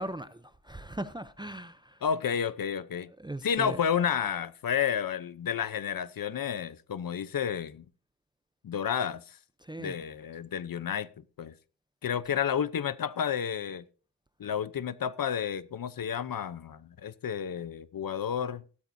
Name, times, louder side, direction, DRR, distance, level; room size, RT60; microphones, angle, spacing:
voice 1, 0.0-2.0 3.2-3.8 9.6-9.9, right 1 dB, 10° right, 0.6 m, -39 dB
voice 2, 2.0-3.1 3.4-7.8 8.6-9.4 9.8-11.5 12.0-13.8 14.4-18.6, left 8 dB, 45° left, 0.8 m, -31 dB
16.5 x 13.0 x 2.7 m
cardioid pair, 120°, 49 cm